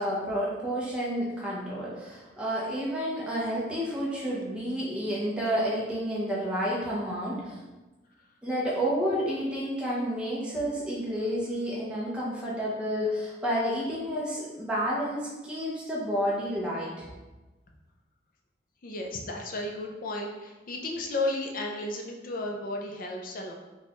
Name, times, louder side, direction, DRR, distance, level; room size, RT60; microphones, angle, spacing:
voice 1, 0.0-7.6 8.4-17.1, equal, 5° right, -7 dB, 0.7 m, -30 dB
voice 2, 18.8-23.5, left 2 dB, 45° left, 2 dB, 0.4 m, -33 dB
4.2 x 2.3 x 2.9 m, 1.1 s
head